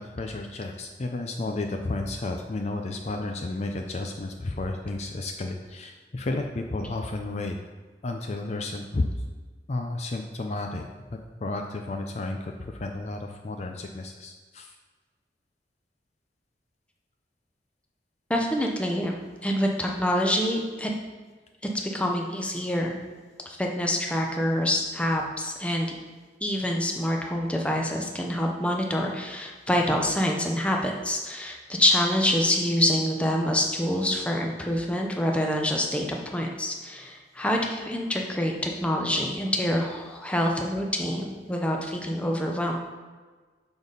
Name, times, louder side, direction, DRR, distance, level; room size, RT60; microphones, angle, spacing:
voice 1, 0.0-7.6 8.0-9.1 9.7-10.9 11.4-14.7, left 2 dB, 40° left, 3 dB, 0.5 m, -32 dB
voice 2, 18.3-19.2 19.4-20.9 21.9-23.0 23.5-26.0 26.4-42.7, left 1 dB, 5° left, 0 dB, 0.7 m, -26 dB
6.9 x 4.1 x 5.3 m, 1.4 s
head